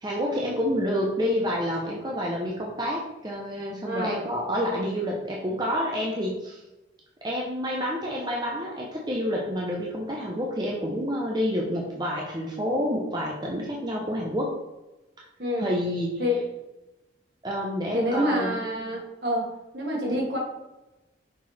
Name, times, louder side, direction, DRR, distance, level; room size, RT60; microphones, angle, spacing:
voice 1, 0.0-6.6 7.2-14.5 15.2-15.3 15.6-16.2 17.4-18.9, equal, 20° right, -2 dB, 0.8 m, -28 dB
voice 2, 3.8-4.2 15.4-15.7 16.2-16.4 17.9-19.5 19.7-20.4, equal, 65° right, -2 dB, 2.2 m, -27 dB
6.2 x 4.6 x 4.3 m, 1.0 s
head